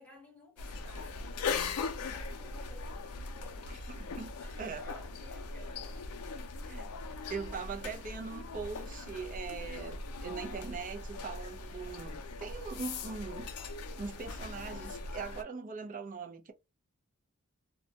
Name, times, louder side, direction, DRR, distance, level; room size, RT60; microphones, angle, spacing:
voice 1, 0.0-3.6 4.4-4.6 4.8-6.2, left 2 dB, 5° left, 1.0 m, -56 dB
sound 1, 0.6-15.4, left 4 dB, 80° left, 0.4 m, -40 dB
voice 2, 3.7-4.3 4.6-4.9 6.6-6.9 7.3-13.5 14.0-16.5, right 5 dB, 35° right, 0.4 m, -41 dB
2.2 x 2.1 x 2.7 m
head